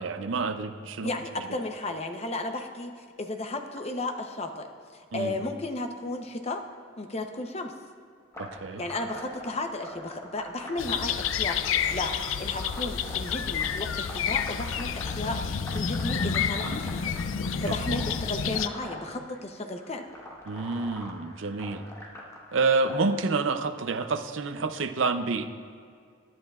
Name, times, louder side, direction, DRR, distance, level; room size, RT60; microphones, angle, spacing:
voice 1, 0.0-1.1 5.1-5.3 8.4-8.8 17.7-17.8 20.5-21.8 22.5-25.5, right 4 dB, 75° right, 8 dB, 0.6 m, -28 dB
voice 2, 1.0-6.6 7.0-7.7 8.8-17.1 17.6-20.0, left 2 dB, 30° left, 5 dB, 0.7 m, -34 dB
sound 1, 8.3-23.0, left 1 dB, 15° left, 1.2 m, -43 dB
sound 2, 10.8-18.7, left 7 dB, 85° left, 0.4 m, -29 dB
19.5 x 10.5 x 2.4 m, 2.2 s
head